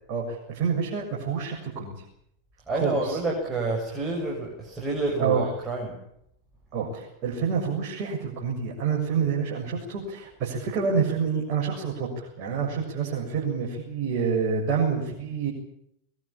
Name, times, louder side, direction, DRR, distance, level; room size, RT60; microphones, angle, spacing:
voice 1, 0.1-2.0 2.7-3.2 5.2-5.5 6.7-15.5, right 6 dB, 40° right, -3 dB, 7.4 m, -28 dB
voice 2, 2.7-6.0, right 2 dB, 15° right, -2 dB, 7.6 m, -29 dB
22.0 x 22.0 x 8.9 m, 0.74 s
figure-of-eight pair, 90°, 0 cm